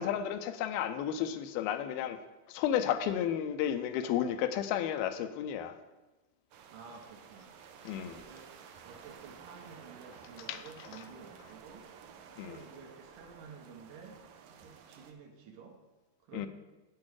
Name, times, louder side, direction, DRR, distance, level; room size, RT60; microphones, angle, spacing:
voice 1, 0.0-2.2 2.5-5.7 7.9-8.2 10.5-10.6 10.9-11.0 12.4-12.6 16.3-16.5, left 10 dB, 85° left, 9 dB, 2.5 m, -32 dB
sound 1, 6.5-15.1, right 7 dB, 85° right, 1.6 m, -53 dB
voice 2, 6.7-7.5 8.0-11.9 12.4-14.2 14.4-15.8 16.2-16.5, right 6 dB, 70° right, 3 dB, 2.1 m, -52 dB
8.6 x 8.4 x 4.7 m, 1.1 s
omnidirectional pair, 4.3 m